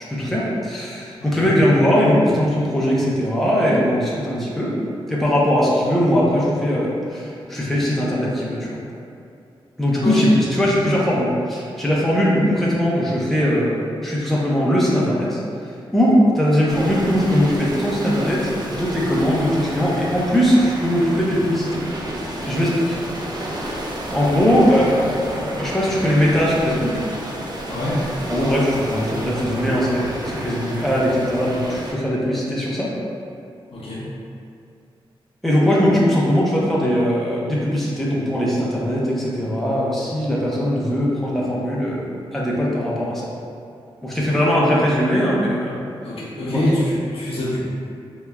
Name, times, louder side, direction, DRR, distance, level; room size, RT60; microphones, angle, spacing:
voice 1, 0.1-4.7 5.1-8.8 9.8-15.4 15.9-21.8 22.4-23.0 24.1-27.0 28.3-32.9 35.4-43.3 44.0-45.8 46.4-46.7, equal, 5° left, -7 dB, 0.6 m, -20 dB
voice 2, 1.2-1.5 10.0-10.3 27.7-28.0 33.7-34.1 46.0-47.6, left 1 dB, 80° left, -6 dB, 0.7 m, -24 dB
sound 1, 16.7-31.9, right 1 dB, 45° right, 0.5 m, -31 dB
3.4 x 3.0 x 2.3 m, 2.5 s
wide cardioid pair, 95°, 10 cm